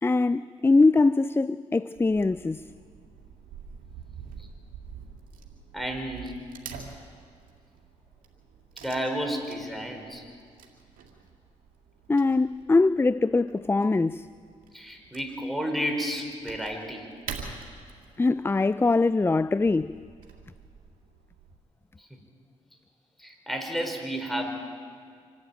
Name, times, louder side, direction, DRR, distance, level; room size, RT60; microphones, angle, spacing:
voice 1, 0.0-2.6 12.1-14.3 18.2-19.9, left 3 dB, 15° left, 0.4 m, -22 dB
Wood / Tearing, 2.0-21.6, right 6 dB, 80° right, 2.5 m, -47 dB
voice 2, 5.7-6.3 8.8-10.2 12.7-12.8 14.7-17.0 22.0-22.1 23.2-24.4, equal, ahead, 5.1 m, -31 dB
25.5 x 11.5 x 9.0 m
supercardioid pair, 50°, 14 cm